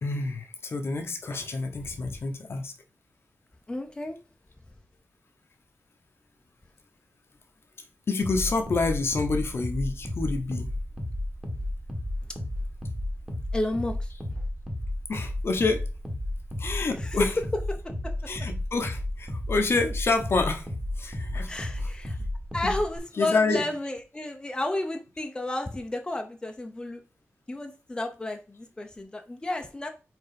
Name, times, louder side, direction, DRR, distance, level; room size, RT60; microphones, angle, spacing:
voice 1, 0.0-2.7 8.1-10.7 15.1-15.9 16.6-17.5 18.3-20.7 21.0-21.5 21.8-21.9 22.6-22.8 23.1-23.7, left 3 dB, 50° left, 1.0 m, -28 dB
voice 2, 1.8-2.2 3.7-4.2 13.5-14.4 17.0-18.5 21.5-22.2 22.5-27.0 27.5-29.9, left 2 dB, 15° left, 0.7 m, -32 dB
sound 1, 8.2-23.0, left 1 dB, 5° right, 1.3 m, -33 dB
4.7 x 4.4 x 5.1 m
wide cardioid pair, 165°, 5 cm